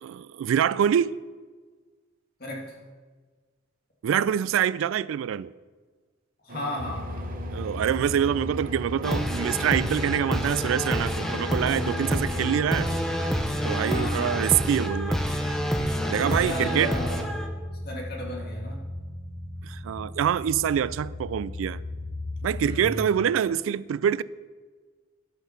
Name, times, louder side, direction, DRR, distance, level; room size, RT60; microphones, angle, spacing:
voice 1, 0.0-1.2 4.0-5.5 7.5-12.9 13.6-15.2 16.1-16.9 19.6-21.8 22.4-24.2, right 9 dB, 90° right, 0.3 m, -25 dB
voice 2, 2.4-2.8 6.4-7.4 13.9-14.5 16.2-17.4 17.8-18.8 22.6-23.2, equal, 50° left, 2.1 m, -35 dB
sound 1, 6.5-13.0, right 2 dB, 45° right, 0.8 m, -41 dB
sound 2, 6.8-22.8, left 1 dB, 75° left, 1.8 m, -35 dB
sound 3, 9.0-17.5, equal, 5° left, 0.8 m, -29 dB
11.5 x 5.6 x 5.8 m
head